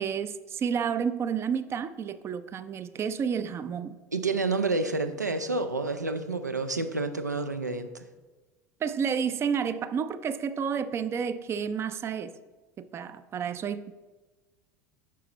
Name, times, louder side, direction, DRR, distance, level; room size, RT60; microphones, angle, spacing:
voice 1, 0.0-4.0 8.8-12.3 12.8-13.9, right 7 dB, 30° right, 13 dB, 0.4 m, -30 dB
voice 2, 4.1-8.0, right 3 dB, 85° right, 9 dB, 0.5 m, -29 dB
9.2 x 5.7 x 3.0 m, 1.2 s
figure-of-eight pair, 75°, 9 cm